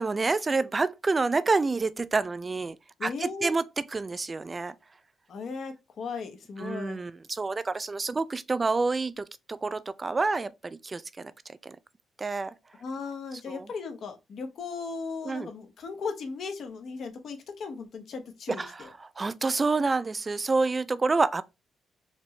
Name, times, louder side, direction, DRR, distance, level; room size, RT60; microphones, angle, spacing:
voice 1, 0.0-2.8 3.0-4.7 6.6-11.3 11.6-11.8 12.2-12.5 13.5-13.7 15.3-15.5 18.5-21.4, right 3 dB, 30° right, 0.3 m, -28 dB
voice 2, 3.0-3.5 5.3-7.0 12.8-18.9, left 5 dB, 60° left, 0.9 m, -37 dB
4.3 x 2.9 x 3.1 m
cardioid pair, 90°, 0 cm